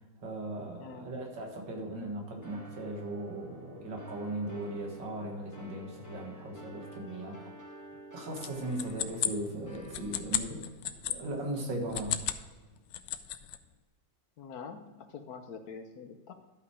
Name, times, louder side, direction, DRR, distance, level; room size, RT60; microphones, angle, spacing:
voice 1, 0.2-7.5 8.1-10.6 11.0-12.2, right 1 dB, 80° right, 1 dB, 2.3 m, -38 dB
voice 2, 0.8-1.1 14.4-16.3, left 5 dB, 60° left, 7 dB, 1.3 m, -45 dB
sound 1, 2.4-10.7, right 1 dB, 10° left, 2.2 m, -50 dB
sound 2, 8.4-11.2 11.8-12.5 12.8-13.6, left 12 dB, 85° left, 1.2 m, -34 dB
12.0 x 5.5 x 4.8 m, 1.3 s
omnidirectional pair, 1.9 m